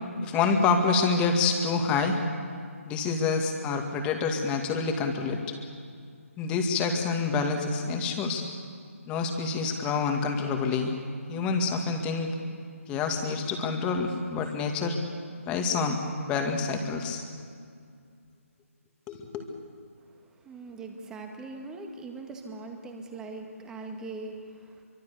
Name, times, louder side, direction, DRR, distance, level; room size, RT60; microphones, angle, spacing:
voice 1, 0.2-2.2 2.9-5.6 6.4-8.4 9.1-10.9 11.3-12.4 12.9-15.0 15.4-17.2 19.1-19.5, left 4 dB, 15° left, 4 dB, 2.2 m, -27 dB
voice 2, 20.1-24.8, right 3 dB, 10° right, 3 dB, 2.0 m, -41 dB
25.5 x 24.5 x 7.0 m, 2.2 s
figure-of-eight pair, 150°, 8 cm